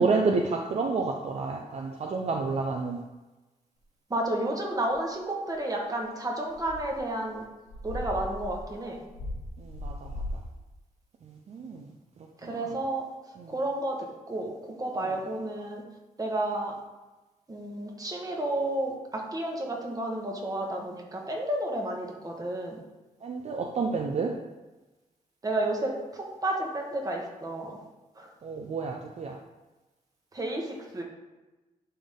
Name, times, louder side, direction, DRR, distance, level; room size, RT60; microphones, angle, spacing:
voice 1, 0.0-3.0 9.6-10.1 11.5-11.9 12.4-12.7 13.4-13.5 23.2-24.3 28.4-29.3, right 4 dB, 50° right, 1 dB, 0.6 m, -29 dB
voice 2, 4.1-7.4 7.8-9.0 12.4-13.1 13.5-14.5 14.8-15.8 16.2-16.8 17.5-22.8 25.4-27.8 28.2-28.3 30.3-31.0, right 1 dB, 25° right, 0 dB, 1.4 m, -31 dB
sound 1, 4.9-5.0 6.5-7.0 7.4-7.5 7.7-10.5, left 1 dB, 90° left, 1.7 m, -37 dB
11.0 x 3.7 x 3.7 m, 1.1 s
cardioid pair, 105°, 14 cm